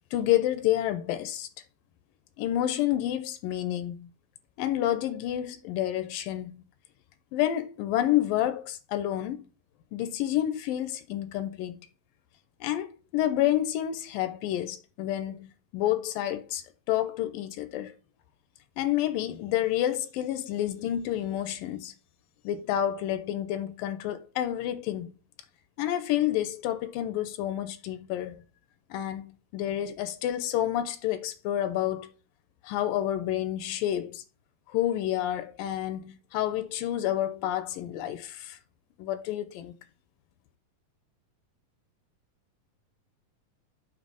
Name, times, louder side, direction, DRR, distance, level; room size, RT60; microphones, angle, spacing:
voice 1, 0.1-1.5 2.4-4.1 4.6-6.6 7.3-9.4 9.9-11.9 12.6-17.9 18.8-21.9 22.4-25.1 25.8-28.4 28.9-32.1 32.6-34.2 34.7-38.6 39.0-39.7, left 12 dB, 80° left, 2.2 m, -29 dB
7.5 x 3.1 x 6.2 m
omnidirectional pair, 4.0 m